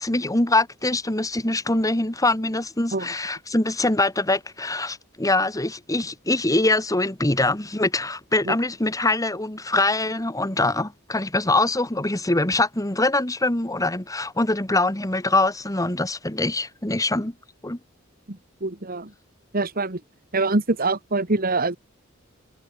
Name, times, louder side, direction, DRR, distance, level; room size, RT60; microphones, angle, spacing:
voice 1, 0.0-17.3 17.6-17.8, left 2 dB, 15° left, 2.0 m, -23 dB
voice 2, 18.3-19.1 19.5-20.0 20.3-21.8, right 3 dB, 45° right, 2.0 m, -24 dB
head